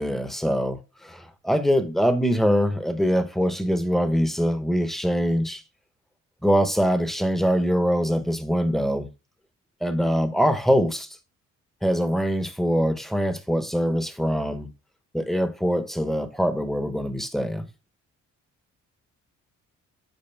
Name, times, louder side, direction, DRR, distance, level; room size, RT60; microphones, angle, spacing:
voice 1, 0.0-5.6 6.4-9.1 9.8-11.1 11.8-14.7 15.1-17.7, equal, ahead, 0.9 m, -23 dB
8.8 x 4.9 x 3.4 m
cardioid pair, 90°, 30 cm